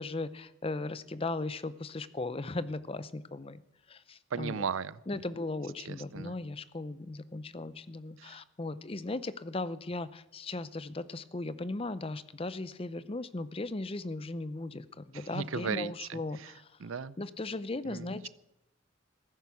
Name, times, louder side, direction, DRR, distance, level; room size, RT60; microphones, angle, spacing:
voice 1, 0.0-3.6 3.9-4.7 5.1-16.7 17.2-18.3, left 2 dB, 30° left, 15 dB, 0.6 m, -37 dB
voice 2, 4.3-5.2 5.9-6.3 8.2-8.4 15.1-16.5 16.8-17.2 17.8-18.3, right 6 dB, 85° right, 18 dB, 0.5 m, -37 dB
15.0 x 11.0 x 7.0 m, 0.89 s
head